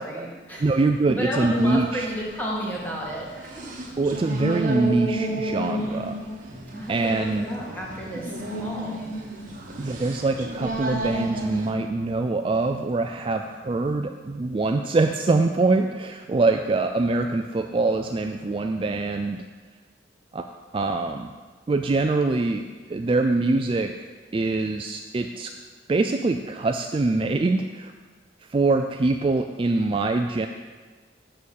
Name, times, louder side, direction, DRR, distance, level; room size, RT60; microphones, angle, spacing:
voice 1, 0.0-0.8 1.1-3.3 6.7-9.0 9.8-9.9, right 1 dB, 10° left, -4 dB, 1.9 m, -32 dB
voice 2, 0.6-2.1 4.0-6.2 6.9-7.5 9.8-19.4 20.3-20.5 20.7-21.3 21.7-25.5 25.9-27.9 28.5-30.5, right 3 dB, 30° right, 5 dB, 0.3 m, -24 dB
sound 1, 1.5-11.7, right 1 dB, 45° right, 1.4 m, -33 dB
6.8 x 6.4 x 7.1 m, 1.4 s
head